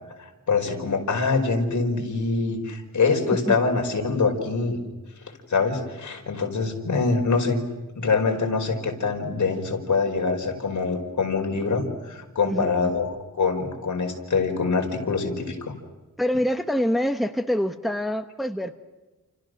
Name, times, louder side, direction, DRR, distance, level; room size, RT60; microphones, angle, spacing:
voice 1, 0.2-4.8 5.3-7.6 8.0-15.7, left 4 dB, 60° left, 3 dB, 5.1 m, -24 dB
voice 2, 12.4-12.9 16.2-18.7, equal, ahead, 7 dB, 1.0 m, -25 dB
30.0 x 29.0 x 6.5 m, 1.1 s
wide cardioid pair, 165°, 32 cm